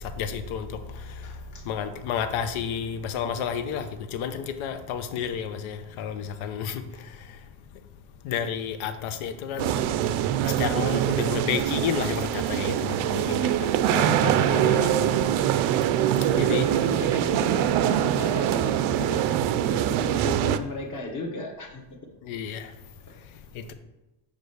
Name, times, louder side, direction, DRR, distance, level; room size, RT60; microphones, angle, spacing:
voice 1, 0.2-0.7 1.7-3.9 4.1-6.8 8.2-9.7 10.4-13.5 13.9-14.9 16.4-16.7 22.3-22.7, left 8 dB, 80° left, 1.0 m, -30 dB
voice 2, 1.2-1.7 6.9-7.1 14.0-14.9 16.3-21.8 23.1-23.2, left 2 dB, 40° left, 1.3 m, -37 dB
sound 1, 9.6-20.6, right 11 dB, 80° right, 0.6 m, -24 dB
5.5 x 5.2 x 6.5 m
cardioid pair, 130°, 47 cm